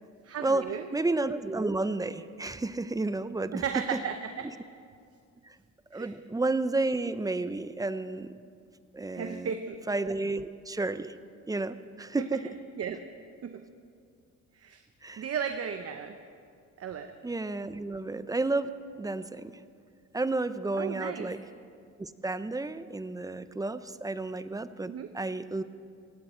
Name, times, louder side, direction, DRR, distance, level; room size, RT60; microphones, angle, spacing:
voice 1, 0.2-0.9 3.5-4.5 5.9-6.1 9.1-9.8 12.2-12.3 12.8-13.0 13.4-13.6 14.5-14.8 15.2-16.2 16.8-17.1 20.7-21.3 24.9-25.1, right 7 dB, 50° right, 7 dB, 0.8 m, -35 dB
voice 2, 0.9-3.6 3.9-4.0 5.4-5.6 5.9-8.3 8.9-9.5 9.9-11.1 11.5-12.4 15.0-15.2 17.2-18.7 19.0-19.5 20.1-21.4 22.0-25.6, right 2 dB, 10° right, 13 dB, 0.5 m, -31 dB
17.5 x 17.0 x 4.4 m, 2.3 s
cardioid pair, 105°, 31 cm